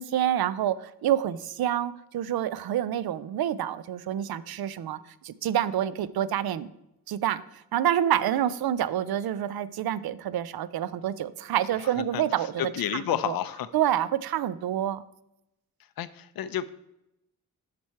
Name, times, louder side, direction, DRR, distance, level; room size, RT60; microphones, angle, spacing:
voice 1, 0.0-5.0 5.2-6.7 7.1-7.4 7.7-12.5 13.3-13.4 13.7-15.0, right 11 dB, 85° right, 16 dB, 0.5 m, -27 dB
voice 2, 11.7-13.7 16.0-16.7, left 10 dB, 75° left, 12 dB, 0.5 m, -31 dB
7.3 x 6.1 x 4.5 m, 0.86 s
wide cardioid pair, 140°, 36 cm